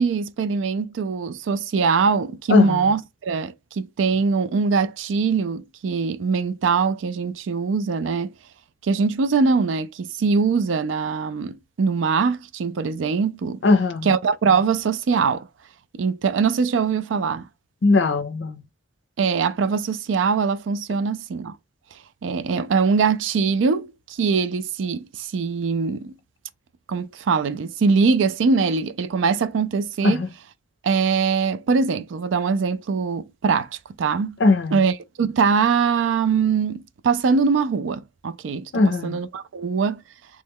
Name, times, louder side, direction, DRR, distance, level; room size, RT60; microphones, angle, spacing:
voice 1, 0.0-8.3 8.8-13.6 14.0-15.5 15.9-17.5 19.2-21.6 22.2-26.1 26.9-30.2 30.8-34.4 34.7-40.0, right 5 dB, 90° right, 0.4 m, -22 dB
voice 2, 2.5-2.8 13.6-14.1 17.8-18.6 30.0-30.3 34.4-34.8 38.7-39.2, left 3 dB, 70° left, 0.5 m, -19 dB
3.1 x 2.2 x 3.5 m
head